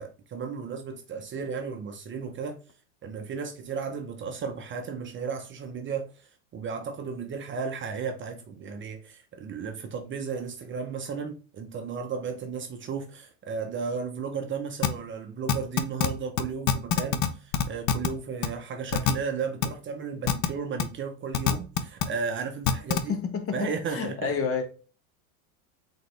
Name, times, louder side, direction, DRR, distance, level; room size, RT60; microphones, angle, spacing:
voice 1, 0.0-2.6 3.0-23.2 23.5-24.4, right 5 dB, 30° right, 0.7 m, -34 dB
sound 1, 14.8-14.9 15.5-16.1 16.4-16.5 16.7-17.3 17.5-18.1 18.4-18.5 18.9-19.1 19.6-19.7 20.3-20.5 20.8-20.9 21.3-22.0 22.7-23.0, left 9 dB, 50° left, 0.7 m, -23 dB
voice 2, 22.9-24.7, left 6 dB, 30° left, 1.0 m, -30 dB
3.9 x 3.9 x 3.2 m
supercardioid pair, 115°, 43 cm